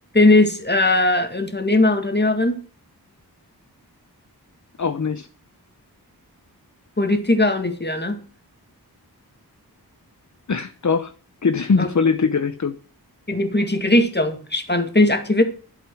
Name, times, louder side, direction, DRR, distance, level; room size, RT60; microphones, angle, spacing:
voice 1, 0.1-2.6 7.0-8.2 11.8-11.9 13.3-15.4, left 2 dB, 25° left, 7 dB, 2.1 m, -19 dB
voice 2, 4.8-5.3 10.5-11.1 11.4-12.8, left 5 dB, 45° left, 10 dB, 0.8 m, -21 dB
11.5 x 7.9 x 6.3 m, 0.41 s
wide cardioid pair, 70°, 39 cm